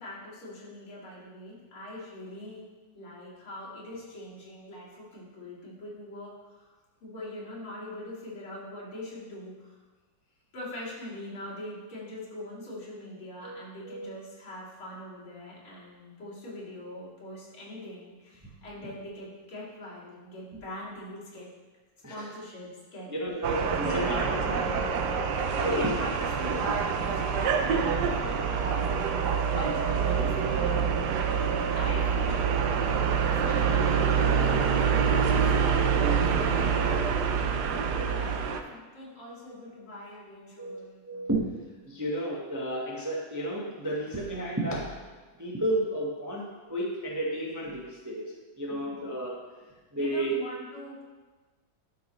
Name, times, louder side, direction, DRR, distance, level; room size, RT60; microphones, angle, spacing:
voice 1, 0.0-2.6 2.9-6.7 7.0-9.8 10.5-21.5 22.1-23.1 23.8-24.9 25.5-28.7 29.5-30.9 31.7-32.7 33.4-35.5 36.1-37.0 37.3-41.3 48.7-49.1 49.9-51.0, left 1 dB, 85° left, -8 dB, 3.3 m, -41 dB
voice 2, 23.1-24.6 25.6-25.9 26.4-26.6 33.5-33.6 34.3-34.6 40.6-40.8 41.1-41.5 41.9-44.9 45.4-49.4 49.9-50.4, right 1 dB, 15° right, -4 dB, 0.6 m, -32 dB
sound 1, 23.4-38.6, right 6 dB, 70° right, 1.0 m, -26 dB
sound 2, 25.3-28.4 28.7-29.4 29.7-29.8 30.1-30.3, equal, 60° left, 3.7 m, -50 dB
12.5 x 5.9 x 3.1 m, 1.3 s
omnidirectional pair, 2.3 m